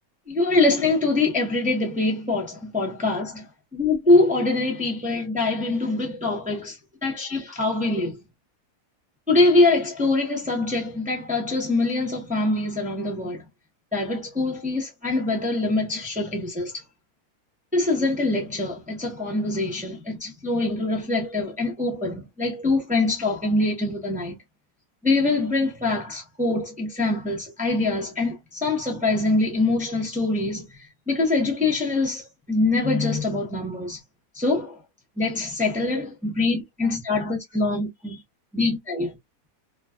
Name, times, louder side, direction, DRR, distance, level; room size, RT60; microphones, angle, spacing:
voice 1, 0.3-3.4 3.7-6.8 7.0-8.2 9.3-13.5 13.9-16.7 17.7-24.4 25.0-30.7 31.1-34.0 34.3-34.7 35.2-38.2 38.5-39.1, left 2 dB, 5° right, 0.6 m, -24 dB
2.4 x 2.4 x 2.2 m
omnidirectional pair, 1.7 m